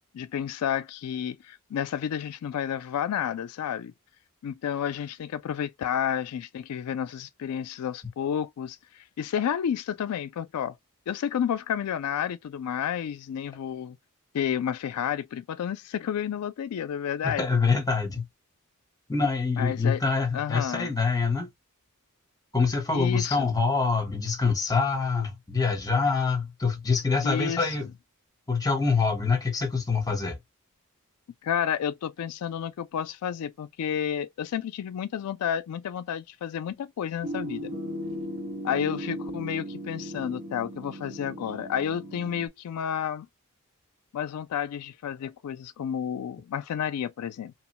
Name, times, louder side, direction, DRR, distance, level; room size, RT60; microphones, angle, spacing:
voice 1, 0.1-3.9 4.4-10.7 11.1-14.0 14.3-17.5 19.6-20.0 20.3-20.9 22.9-23.5 27.2-27.9 31.4-37.7 38.6-43.3 44.1-47.5, left 8 dB, 90° left, 0.3 m, -31 dB
voice 2, 17.2-18.2 19.1-21.5 22.5-27.9 28.5-30.4, left 4 dB, 15° left, 0.9 m, -25 dB
sound 1, 37.2-42.5, equal, 65° right, 1.4 m, -37 dB
2.9 x 2.1 x 2.9 m
head